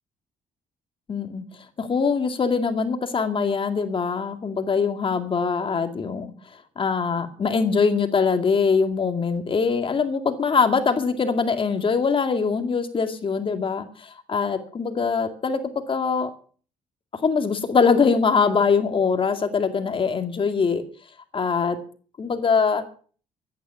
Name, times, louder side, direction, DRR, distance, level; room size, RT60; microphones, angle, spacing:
voice 1, 1.1-1.4 1.8-6.3 6.8-15.6 15.9-16.3 17.1-20.8 21.3-21.8 22.2-22.8, left 5 dB, 40° left, 8 dB, 2.3 m, -23 dB
14.5 x 10.0 x 7.0 m, 0.43 s
cardioid pair, 90°, 14 cm